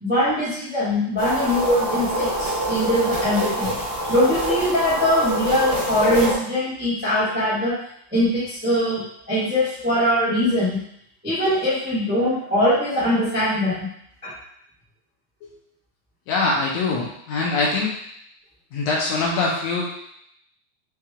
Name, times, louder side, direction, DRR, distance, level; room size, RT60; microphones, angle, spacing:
voice 1, 0.0-3.8 4.1-7.7 8.1-10.8 11.2-13.9 14.2-14.3, left 1 dB, 10° right, -10 dB, 0.6 m, -22 dB
sound 1, 1.2-6.3, right 1 dB, 35° right, 0.9 m, -25 dB
voice 2, 16.3-17.9 18.7-19.8, left 3 dB, 75° left, -2 dB, 1.7 m, -23 dB
5.6 x 3.2 x 2.4 m, 0.72 s
omnidirectional pair, 3.4 m